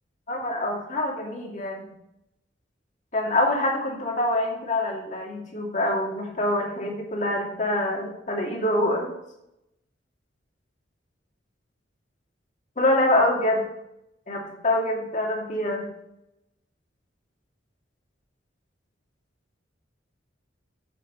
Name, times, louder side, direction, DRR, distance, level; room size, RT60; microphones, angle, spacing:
voice 1, 0.3-1.9 3.1-9.1 12.8-13.7 14.3-15.9, left 1 dB, 45° left, -1 dB, 2.4 m, -25 dB
7.7 x 7.5 x 5.5 m, 0.82 s
head